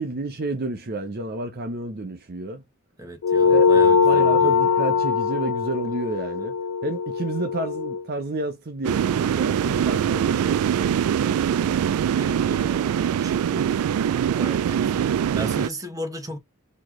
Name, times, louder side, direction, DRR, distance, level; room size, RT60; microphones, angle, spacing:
voice 1, 0.0-2.6 3.4-6.5 6.8-11.8, right 2 dB, 45° right, 0.7 m, -31 dB
voice 2, 3.0-4.6 12.2-13.9 14.3-16.4, equal, 15° right, 1.2 m, -36 dB
sound 1, 3.2-8.0, left 5 dB, 85° left, 0.4 m, -21 dB
sound 2, 8.8-15.7, right 8 dB, 75° right, 0.3 m, -23 dB
4.3 x 3.0 x 3.1 m
head